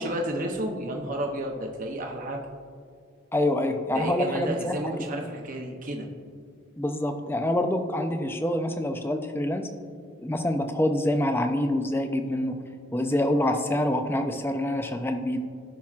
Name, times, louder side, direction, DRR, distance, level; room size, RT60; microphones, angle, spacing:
voice 1, 0.0-2.4 3.9-6.1, right 1 dB, 40° right, 1 dB, 0.7 m, -31 dB
voice 2, 3.3-4.9 6.8-9.7 10.2-12.6 12.9-15.4, left 1 dB, 10° left, 6 dB, 0.4 m, -26 dB
16.0 x 5.8 x 2.4 m, 2.1 s
head